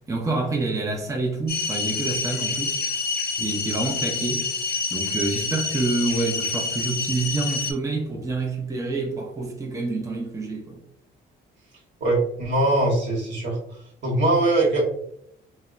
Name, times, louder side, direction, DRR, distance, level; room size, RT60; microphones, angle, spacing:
voice 1, 0.1-3.1 3.4-4.5 4.9-10.8, right 3 dB, 15° right, 0.5 m, -27 dB
sound 1, 1.5-7.7, left 4 dB, 50° left, 0.5 m, -27 dB
voice 2, 12.0-13.6 14.0-14.8, right 2 dB, 65° right, 1.0 m, -21 dB
2.7 x 2.1 x 2.3 m
cardioid pair, 90°, 20 cm